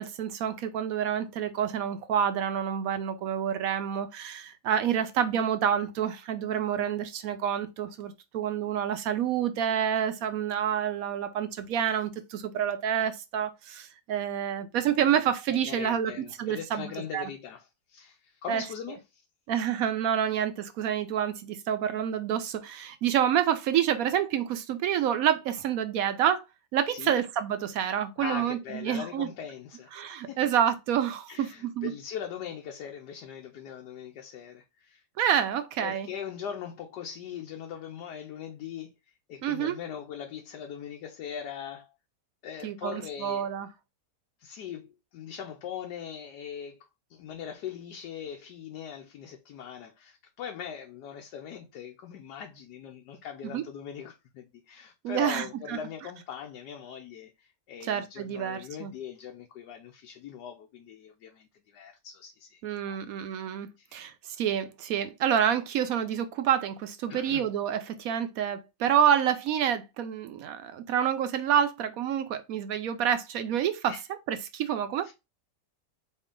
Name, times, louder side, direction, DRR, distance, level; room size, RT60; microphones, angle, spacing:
voice 1, 0.0-16.1 16.4-17.2 18.5-18.6 19.5-26.4 26.7-29.3 29.9-31.9 35.2-36.1 39.4-39.8 42.6-43.7 53.5-53.6 55.0-55.8 57.8-58.9 62.6-73.9 74.3-75.1, right 9 dB, 70° right, 0.9 m, -28 dB
voice 2, 15.6-19.2 26.9-27.2 28.2-30.4 31.3-35.0 35.8-38.9 39.3-41.9 42.4-43.5 44.4-46.8 47.1-62.6 62.9-63.0 63.8-64.0 67.1-67.5 73.9-74.0 75.0-75.1, left 8 dB, 80° left, 1.2 m, -41 dB
4.4 x 3.2 x 3.6 m
omnidirectional pair, 1.8 m